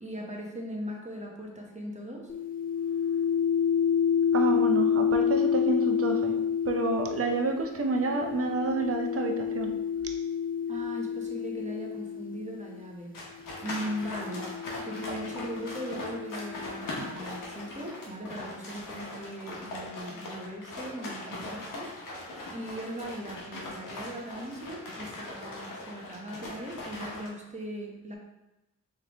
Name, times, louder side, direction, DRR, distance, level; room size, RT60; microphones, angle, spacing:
voice 1, 0.0-2.3 10.7-14.5 14.8-28.2, equal, 20° right, -1 dB, 0.9 m, -39 dB
sound 1, 2.3-12.7 13.6-17.3, left 7 dB, 30° left, 0.4 m, -29 dB
voice 2, 4.3-6.4 6.6-9.7, right 3 dB, 45° right, 4 dB, 0.7 m, -29 dB
sound 2, 13.1-27.3, left 2 dB, 90° left, 1.0 m, -40 dB
3.4 x 3.3 x 3.5 m, 0.96 s
cardioid pair, 50°, 32 cm